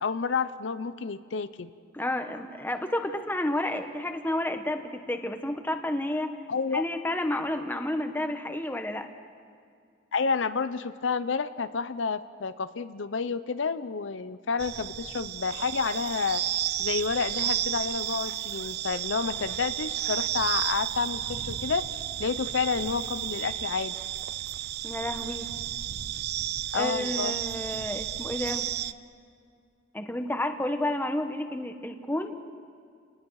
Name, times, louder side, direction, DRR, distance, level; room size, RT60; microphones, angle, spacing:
voice 1, 0.0-1.7 6.5-6.8 10.1-16.4 16.8-24.0 26.7-27.3, left 5 dB, 90° left, 12 dB, 0.7 m, -30 dB
voice 2, 1.9-6.3 6.7-9.1 24.8-25.5 26.7-28.7 29.9-32.4, left 1 dB, 10° left, 6 dB, 1.1 m, -31 dB
sound 1, 14.6-28.9, right 12 dB, 60° right, 0.5 m, -32 dB
29.5 x 19.5 x 4.8 m, 2.2 s
head